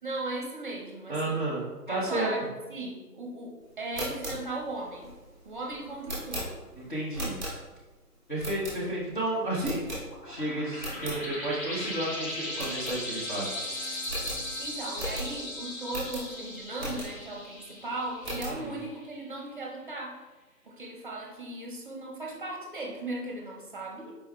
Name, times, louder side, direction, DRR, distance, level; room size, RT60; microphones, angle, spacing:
voice 1, 0.0-1.4 1.9-5.1 5.4-6.6 14.6-20.2 20.6-24.1, right 2 dB, 30° right, -1 dB, 0.8 m, -37 dB
voice 2, 1.1-2.3 6.8-7.4 8.3-9.9 10.2-13.5 18.4-18.7, right 1 dB, 30° left, -8 dB, 0.7 m, -32 dB
sound 1, 3.8-7.9 8.4-9.1 9.6-10.4 10.7-11.2 11.6-11.7 12.0-12.1 12.5-13.4 13.7-13.8 14.0-17.3 17.8-18.6, right 1 dB, 15° right, 1.3 m, -38 dB
sound 2, 9.9-19.1, left 1 dB, 85° left, 1.5 m, -38 dB
4.8 x 4.6 x 2.2 m, 1.2 s
hypercardioid pair, 165°, 48 cm